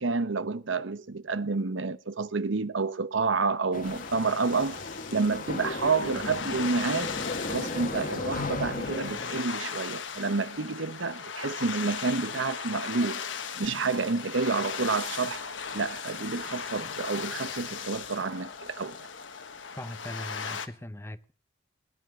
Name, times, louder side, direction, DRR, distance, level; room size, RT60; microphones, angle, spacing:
voice 1, 0.0-4.8 5.1-7.2 7.5-13.2 13.6-15.5 15.7-19.0, right 4 dB, 80° right, 0.9 m, -29 dB
sound 1, 3.7-9.4, left 3 dB, 45° left, 1.3 m, -36 dB
sound 2, 3.8-20.7, left 6 dB, 75° left, 1.3 m, -38 dB
voice 2, 19.8-21.3, left 1 dB, 15° left, 0.6 m, -40 dB
19.0 x 10.5 x 6.1 m
head